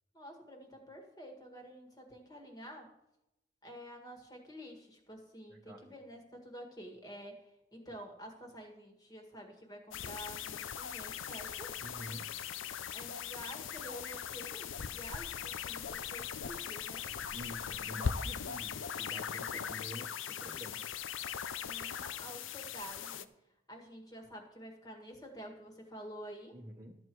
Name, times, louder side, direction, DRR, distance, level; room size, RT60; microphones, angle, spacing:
voice 1, 0.1-2.9 3.6-11.8 12.9-17.0 21.6-23.3 23.7-26.6, equal, 20° left, 2 dB, 1.7 m, -49 dB
voice 2, 5.5-5.9 11.8-12.3 17.3-20.8 26.5-27.0, equal, 20° right, -3 dB, 1.1 m, -48 dB
sound 1, 9.9-23.2, left 7 dB, 85° left, 0.6 m, -40 dB
13.0 x 7.7 x 4.6 m, 0.89 s
head